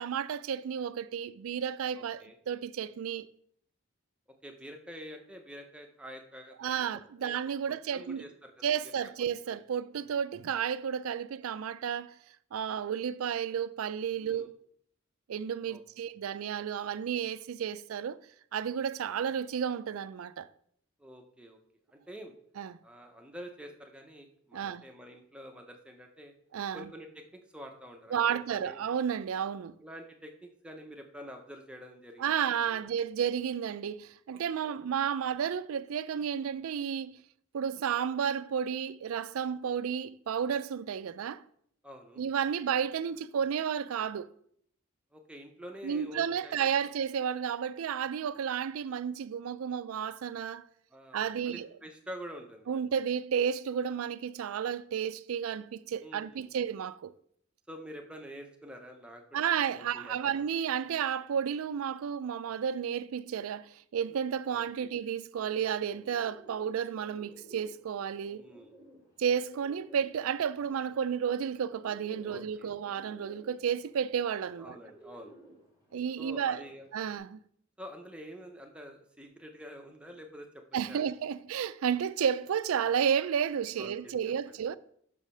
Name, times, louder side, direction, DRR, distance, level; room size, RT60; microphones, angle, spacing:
voice 1, 0.0-3.3 6.6-8.2 8.6-12.2 12.5-14.5 15.3-18.2 18.5-20.5 22.6-22.8 24.5-24.8 26.5-26.9 28.1-29.8 32.2-37.2 37.5-41.4 42.2-44.3 45.8-50.6 51.1-51.7 52.7-57.1 59.3-68.4 69.2-74.8 75.9-76.6 76.9-77.4 80.7-84.8, right 8 dB, 85° right, 0.4 m, -32 dB
voice 2, 1.9-2.4 4.3-7.3 7.9-8.9 9.5-9.6 14.2-14.5 15.7-15.8 21.0-21.6 21.9-22.3 22.8-26.3 26.7-28.8 29.8-32.3 32.6-32.8 41.8-42.2 45.1-46.9 50.9-52.8 56.0-56.6 57.7-59.4 59.7-60.4 64.5-64.9 68.3-68.7 72.2-72.7 74.6-75.3 76.2-76.9 77.8-80.6 80.9-81.2 83.8-84.1 84.5-84.6, equal, 5° right, 0.7 m, -47 dB
Bird, 65.7-77.2, right 1 dB, 15° left, 2.1 m, -56 dB
6.1 x 4.8 x 5.5 m
head